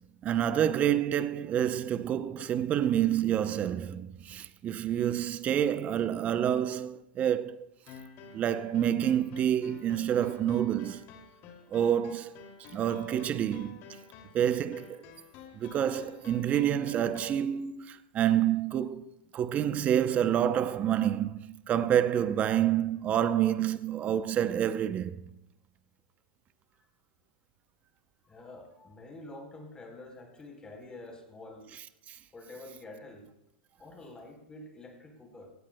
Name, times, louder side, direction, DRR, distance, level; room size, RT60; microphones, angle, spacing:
voice 1, 0.0-7.7 8.3-11.0 11.7-12.4 12.7-13.8 14.3-15.0 15.5-25.2 32.1-32.2, right 10 dB, 25° right, 0.6 m, -28 dB
sound 1, 7.9-17.5, left 6 dB, 40° left, 2.5 m, -50 dB
voice 2, 28.2-31.7 32.3-33.3 33.8-35.5, left 2 dB, 15° left, 3.8 m, -47 dB
18.5 x 16.5 x 2.2 m
hypercardioid pair, 130°, 6 cm